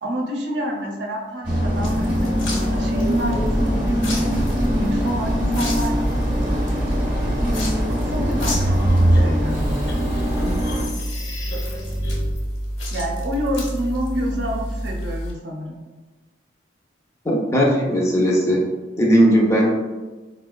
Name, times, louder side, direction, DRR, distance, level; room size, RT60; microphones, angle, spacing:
voice 1, 0.0-4.3 4.8-6.2 7.9-9.7 12.9-15.8, equal, 70° right, 0 dB, 0.5 m, -28 dB
sound 1, 1.4-10.9, equal, 25° right, 0.7 m, -22 dB
sound 2, 1.8-15.3, equal, 85° left, 0.9 m, -29 dB
sound 3, 8.6-12.4, equal, 60° left, 0.6 m, -33 dB
voice 2, 17.2-18.7 19.0-19.7, equal, 15° left, -2 dB, 0.4 m, -18 dB
4.4 x 2.1 x 2.2 m, 1.2 s
head